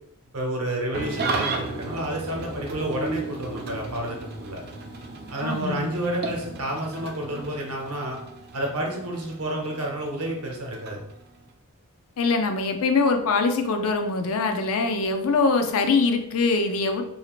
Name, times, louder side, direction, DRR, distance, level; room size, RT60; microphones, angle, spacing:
voice 1, 0.3-4.6 5.3-8.2 8.5-11.0, right 1 dB, 70° right, 0 dB, 0.8 m, -30 dB
Engine starting / Idling, 0.9-11.5, right 3 dB, 45° right, 0.4 m, -35 dB
voice 2, 5.4-5.9 12.2-17.0, left 4 dB, 65° left, 5 dB, 0.4 m, -23 dB
2.7 x 2.4 x 2.9 m, 0.77 s
head